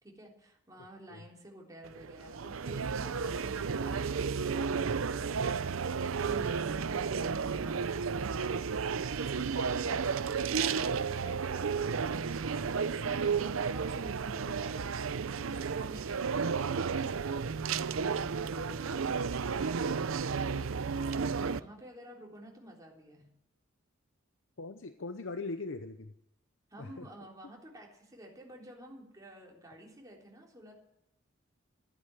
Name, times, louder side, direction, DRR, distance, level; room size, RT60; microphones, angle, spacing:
voice 1, 0.0-21.0 21.4-23.3 26.7-30.7, right 1 dB, 20° right, -1 dB, 3.6 m, -51 dB
sound 1, 1.8-21.6, right 5 dB, 85° right, 0.6 m, -32 dB
voice 2, 24.6-26.1 26.8-27.1, left 3 dB, 70° left, 9 dB, 0.8 m, -40 dB
14.0 x 11.0 x 9.1 m, 0.81 s
head